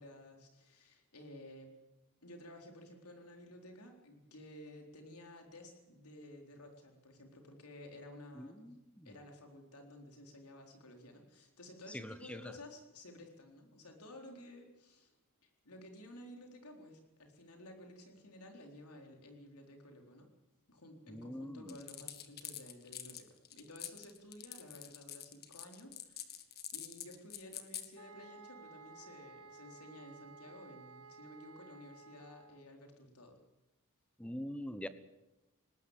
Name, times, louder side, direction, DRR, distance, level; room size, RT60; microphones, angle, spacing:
voice 1, 0.0-1.7 2.2-8.7 9.0-15.1 15.4-20.3 20.7-33.4, left 1 dB, 85° left, 3 dB, 4.1 m, -54 dB
voice 2, 8.3-9.2 11.9-12.5 21.1-21.8 34.2-34.9, equal, 5° left, 12 dB, 1.0 m, -44 dB
sound 1, 21.7-27.9, left 11 dB, 45° left, 1.6 m, -46 dB
sound 2, 28.0-32.7, right 4 dB, 85° right, 1.4 m, -55 dB
19.5 x 19.0 x 8.2 m, 0.99 s
head